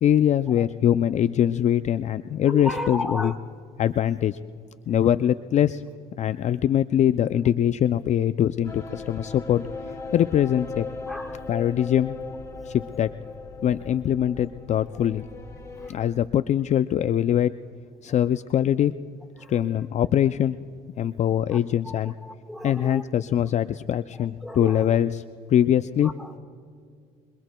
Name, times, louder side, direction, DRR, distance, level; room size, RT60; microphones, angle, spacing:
voice 1, 0.0-3.3 3.8-4.4 4.9-5.8 6.2-9.6 10.1-10.9 11.5-12.2 12.7-13.1 13.6-15.3 15.9-17.5 18.0-18.9 19.5-20.6 21.0-22.1 22.6-25.1 25.5-26.1, left 10 dB, 45° left, 12 dB, 0.4 m, -22 dB
voice 2, 2.5-3.3 4.8-5.1 11.1-11.5 14.9-15.1 15.8-16.0 18.1-18.2 19.4-19.9 21.5-21.6 21.8-23.0 24.1-25.0 26.0-26.4, left 1 dB, ahead, 4 dB, 1.5 m, -35 dB
sound 1, 8.6-15.9, left 3 dB, 20° left, 2.0 m, -38 dB
26.0 x 23.0 x 2.2 m, 2.2 s
cardioid pair, 110°, 17 cm